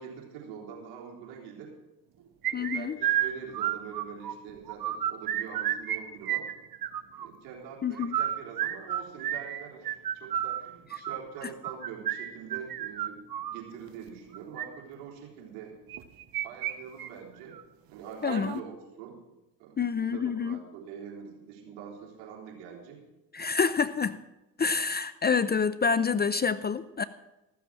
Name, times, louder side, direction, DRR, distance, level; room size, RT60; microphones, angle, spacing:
voice 1, 0.0-1.7 2.5-6.5 7.2-13.2 13.5-15.8 16.4-17.6 17.9-19.2 19.6-23.0, right 7 dB, 75° right, -1 dB, 3.8 m, -44 dB
sound 1, 2.4-4.3 4.7-6.0 6.2-7.3 8.0-13.6 14.3-14.7 15.9-16.7 17.0-17.1 17.5-17.6 18.2-18.6, right 11 dB, 45° right, 1.1 m, -31 dB
voice 2, 2.5-3.0 7.8-8.2 18.2-18.6 19.8-20.6 23.3-24.2 24.6-27.0, left 5 dB, 20° left, 15 dB, 0.5 m, -27 dB
14.5 x 7.1 x 7.5 m, 0.98 s
hypercardioid pair, 70°, 48 cm